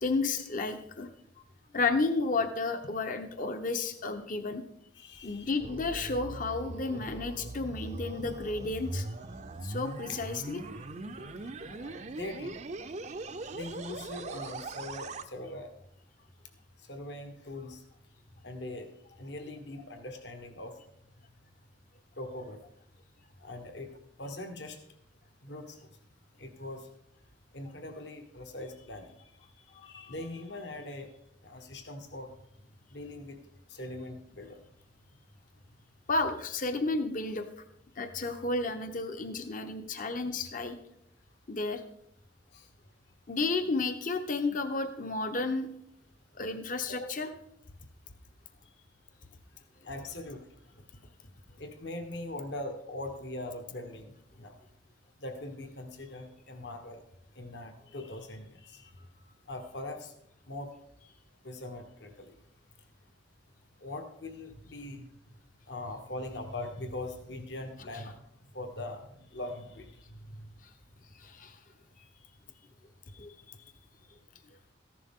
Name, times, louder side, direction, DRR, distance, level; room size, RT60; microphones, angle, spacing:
voice 1, 0.0-1.1 1.7-4.6 5.2-9.1 9.6-10.6 11.2-11.3 29.7-29.9 36.1-37.5 38.0-40.8 41.5-41.8 43.3-45.7 46.4-47.3 71.2-71.6 73.1-73.6, left 3 dB, 45° left, 7 dB, 0.9 m, -32 dB
voice 2, 4.9-5.5 10.1-10.2 11.7-12.5 13.5-15.7 16.9-17.8 18.4-18.9 19.2-20.7 22.2-22.6 23.4-23.9 24.2-24.8 25.4-25.8 26.4-26.8 27.5-29.1 29.8-31.1 31.4-32.3 32.9-33.4 33.7-34.6 42.5-42.6 47.0-47.1 49.8-50.4 51.6-54.1 54.4-54.5 55.2-57.0 57.3-58.9 59.5-60.1 60.5-60.7 61.4-62.3 63.8-65.1 65.7-68.1 68.5-70.0, left 2 dB, 65° left, 5 dB, 1.4 m, -41 dB
sound 1, 5.1-15.3, right 2 dB, 40° right, 0.6 m, -40 dB
14.5 x 11.0 x 3.7 m, 0.74 s
head